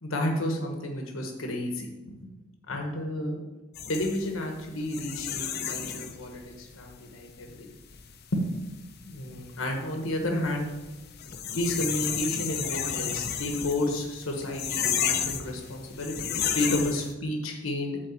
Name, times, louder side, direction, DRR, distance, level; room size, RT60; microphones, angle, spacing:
voice 1, 0.0-2.3 2.7-3.4 3.9-7.7 8.3-8.5 9.0-10.7 11.5-16.3 16.5-18.1, left 1 dB, 75° left, 2 dB, 1.2 m, -31 dB
sound 1, 3.8-17.1, left 8 dB, 50° left, 0.6 m, -33 dB
8.8 x 3.8 x 6.9 m, 1.1 s
head